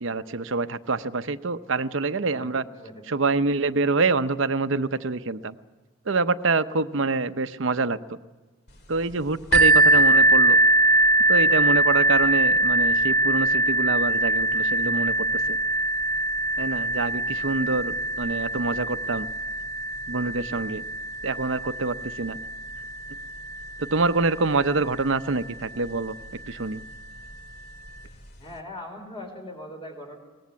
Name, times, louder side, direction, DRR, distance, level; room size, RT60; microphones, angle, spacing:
voice 1, 0.0-2.6 3.1-5.6 6.1-8.0 8.9-10.6 11.3-15.6 16.6-19.3 20.1-20.8 21.2-22.4 23.8-26.2 26.5-26.8, right 3 dB, 70° right, 12 dB, 0.8 m, -26 dB
voice 2, 2.2-3.0 28.4-30.2, left 1 dB, 25° left, 4 dB, 4.1 m, -40 dB
sound 1, 9.5-25.1 25.8-25.9 26.5-26.6, right 2 dB, 50° left, 2.1 m, -22 dB
22.0 x 19.0 x 8.4 m, 1.3 s
head